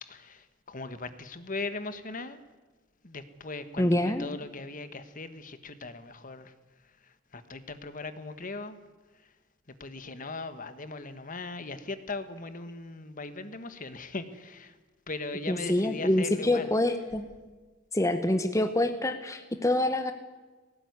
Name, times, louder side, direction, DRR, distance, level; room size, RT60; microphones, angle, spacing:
voice 1, 0.0-2.4 3.0-6.5 7.3-8.8 9.8-14.7 15.1-16.7, left 3 dB, 45° left, 11 dB, 1.4 m, -39 dB
voice 2, 3.8-4.3 15.5-17.2 17.9-20.1, left 1 dB, 15° left, 8 dB, 1.1 m, -26 dB
18.5 x 18.0 x 9.6 m, 1.3 s
head